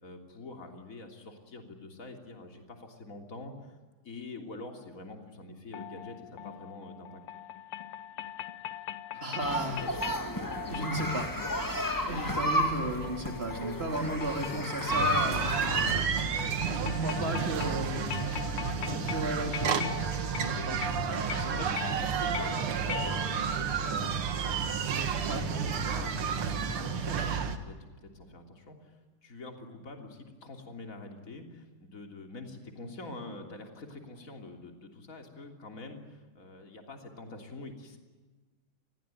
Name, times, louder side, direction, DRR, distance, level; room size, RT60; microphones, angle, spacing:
voice 1, 0.0-3.8 4.0-7.2 19.8-20.0 20.4-27.8 28.0-38.0, left 2 dB, 35° left, 3 dB, 3.5 m, -46 dB
sound 1, 5.7-23.6, left 10 dB, 85° left, 2.0 m, -41 dB
voice 2, 9.1-9.9 10.7-11.3 12.1-15.8 16.8-18.2 18.7-19.9 20.7-21.2 21.5-21.8 25.2-25.4, right 1 dB, 25° right, 3 dB, 3.8 m, -34 dB
sound 2, 9.4-15.9, left 1 dB, 10° left, 2.3 m, -32 dB
sound 3, 14.9-27.6, right 6 dB, 80° right, 2.5 m, -31 dB
29.5 x 21.0 x 9.2 m, 1.3 s
omnidirectional pair, 2.4 m